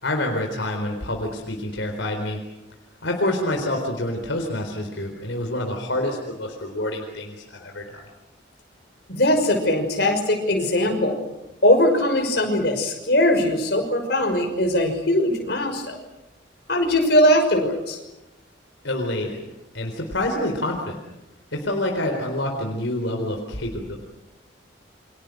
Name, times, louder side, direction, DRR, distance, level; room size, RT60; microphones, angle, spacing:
voice 1, 0.0-2.4 3.0-8.0 18.8-19.4 19.7-21.0 21.5-24.0, left 1 dB, 75° left, 2 dB, 4.2 m, -27 dB
voice 2, 9.1-11.2 11.6-16.0 16.7-18.0, left 1 dB, 55° left, 3 dB, 6.0 m, -20 dB
29.5 x 25.5 x 6.5 m, 0.93 s
head